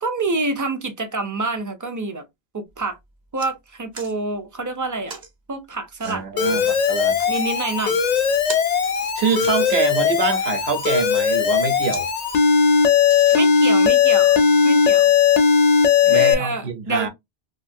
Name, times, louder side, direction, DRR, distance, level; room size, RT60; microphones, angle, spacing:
voice 1, 0.0-2.2 2.5-3.0 3.3-5.2 5.5-6.7 7.3-8.0 13.3-15.1 16.0-17.1, right 3 dB, 30° right, 0.3 m, -27 dB
sound 1, 2.7-2.8 3.1-3.5 3.9-4.1 5.1-5.3 6.0-6.2 6.9-7.5 7.9-8.0 8.3-10.0 10.6-10.9 11.5-11.6 11.9-12.1 12.4-12.5 13.0-13.8 14.4-14.5, right 4 dB, 50° right, 1.1 m, -39 dB
voice 2, 6.0-7.2 9.1-12.1 16.0-17.1, right 5 dB, 80° right, 1.1 m, -25 dB
Alarm, 6.4-16.3, left 6 dB, 55° left, 0.5 m, -18 dB
2.7 x 2.4 x 2.5 m
omnidirectional pair, 1.0 m